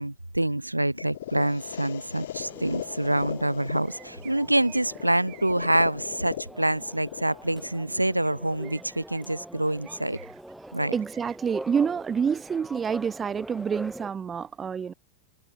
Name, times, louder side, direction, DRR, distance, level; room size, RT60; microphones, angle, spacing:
voice 1, 0.0-10.2 10.7-10.9, right 1 dB, 85° right, 1.0 m, -26 dB
sound 1, 1.0-9.0, left 12 dB, 60° left, 0.8 m, -39 dB
sound 2, 2.4-14.1, right 1 dB, 5° right, 3.3 m, -44 dB
sound 3, 3.8-5.7 8.2-8.3 8.6-9.2 9.8-10.5 10.9-11.4, right 26 dB, 40° right, 7.4 m, -52 dB
voice 2, 10.9-14.9, right 6 dB, 20° right, 0.3 m, -28 dB
figure-of-eight pair, 90°, 0 cm